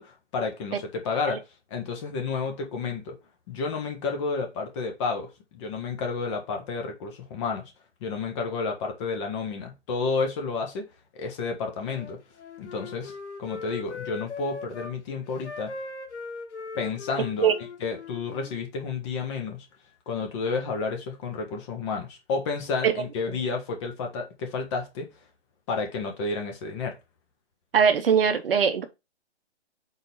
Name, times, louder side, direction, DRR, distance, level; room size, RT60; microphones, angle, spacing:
voice 1, 0.0-1.4 1.7-3.1 3.5-5.3 5.5-7.6 8.0-10.8 11.1-12.2 12.6-13.1 13.4-15.7 16.7-17.5 17.8-19.6 20.1-25.1 25.7-26.9, left 4 dB, 25° left, 1.3 m, -31 dB
Wind instrument woodwind instrument, 11.8-15.0 15.4-18.6, left 4 dB, 75° left, 1.7 m, -40 dB
voice 2, 27.7-28.8, right 7 dB, 55° right, 0.9 m, -20 dB
4.4 x 3.9 x 5.3 m
hypercardioid pair, 155°, 35 cm